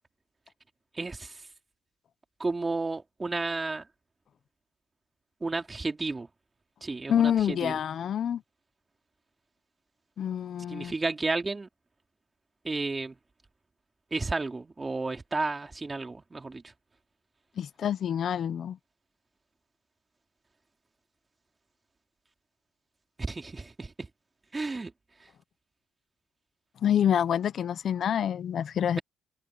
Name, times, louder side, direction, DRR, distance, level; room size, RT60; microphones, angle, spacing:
voice 1, 0.9-1.5 2.4-3.9 5.4-6.3 6.8-7.8 10.7-11.7 12.6-13.2 14.1-16.7 23.2-24.1 24.5-24.9 25.2-25.3, right 3 dB, 25° right, 3.4 m, -32 dB
voice 2, 7.1-8.4 10.2-10.9 17.6-18.8 26.8-29.0, left 9 dB, 60° left, 0.9 m, -27 dB
open air
cardioid pair, 90°, 0 cm